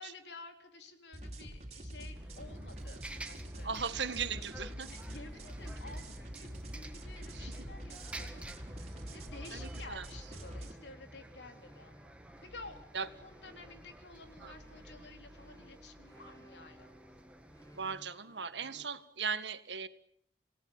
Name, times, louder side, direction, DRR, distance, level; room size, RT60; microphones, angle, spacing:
voice 1, 0.0-4.0 4.8-12.1 12.4-16.9, left 3 dB, 80° left, 5 dB, 3.8 m, -52 dB
sound 1, 1.1-10.7, right 1 dB, 35° right, 3.6 m, -45 dB
Bus, 2.1-18.0, right 1 dB, 5° right, 1.8 m, -50 dB
voice 2, 3.6-4.9 7.3-7.5 9.5-10.0 12.9-13.1 14.4-14.5 17.7-19.9, right 6 dB, 85° right, 11 dB, 1.7 m, -38 dB
sound 2, 5.5-18.9, equal, 15° left, 7.5 m, -61 dB
28.5 x 18.0 x 8.8 m, 0.67 s
head